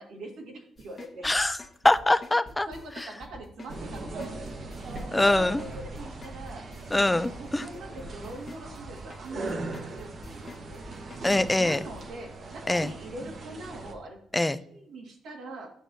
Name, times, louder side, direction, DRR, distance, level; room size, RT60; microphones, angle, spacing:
voice 1, 0.0-1.3 2.6-5.0 5.3-6.7 7.1-10.8 11.6-15.7, right 2 dB, 75° right, 1 dB, 1.7 m, -43 dB
sound 1, 0.8-12.0, left 3 dB, 35° left, 1.2 m, -46 dB
voice 2, 1.2-1.6 1.8-2.7 3.0-3.1 5.1-5.6 6.9-7.7 11.2-11.8 12.7-12.9 14.3-14.6, left 1 dB, 10° left, 12 dB, 0.3 m, -23 dB
sound 2, 3.7-13.9, right 2 dB, 55° right, 1.1 m, -39 dB
8.2 x 6.0 x 2.7 m, 0.72 s
cardioid pair, 90°, 0 cm